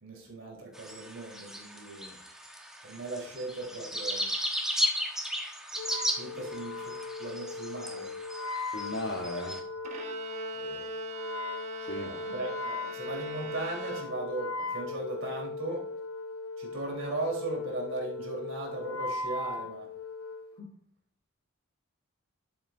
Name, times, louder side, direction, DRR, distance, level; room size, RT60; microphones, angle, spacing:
voice 1, 0.0-2.2 2.8-4.3 6.2-8.1 10.6-10.8 12.0-15.9 16.6-19.9, right 2 dB, 65° right, -1 dB, 3.7 m, -37 dB
sound 1, 0.7-9.6, equal, ahead, 1.2 m, -35 dB
Wind instrument woodwind instrument, 5.8-20.5, left 3 dB, 85° left, 0.8 m, -38 dB
voice 2, 8.7-9.6 11.8-12.1 20.6-20.7, left 1 dB, 55° left, 1 dB, 1.0 m, -36 dB
Bowed string instrument, 9.8-14.6, right 5 dB, 35° right, 1.0 m, -42 dB
13.0 x 7.8 x 2.6 m, 0.63 s
head